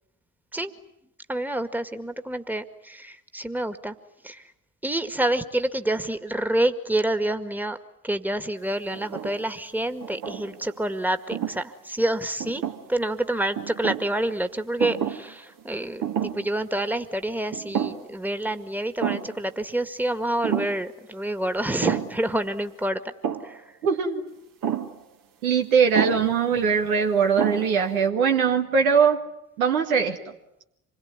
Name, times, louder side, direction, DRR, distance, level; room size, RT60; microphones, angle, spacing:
voice 1, 1.3-4.0 4.2-4.4 4.8-7.8 8.0-12.6 12.9-23.1 23.4-23.6, right 1 dB, 5° right, 9 dB, 2.0 m, -28 dB
sound 1, 8.9-9.5 10.0-10.7 11.3-11.6 12.4-13.1 13.6-14.1 14.8-15.3 15.6-15.7 16.0-16.5 16.9-17.0 17.5-18.2 18.5-18.6 19.0-19.4 20.4-20.8 21.8-22.3 23.2-23.6 24.6-25.0 25.9-26.3 27.0-27.1 27.4-27.9, right 9 dB, 50° right, 2.1 m, -29 dB
voice 2, 23.8-24.2 25.4-29.2 29.6-30.2, right 6 dB, 80° right, 3 dB, 2.1 m, -21 dB
26.5 x 21.5 x 9.8 m, 0.82 s
figure-of-eight pair, 50°, 42 cm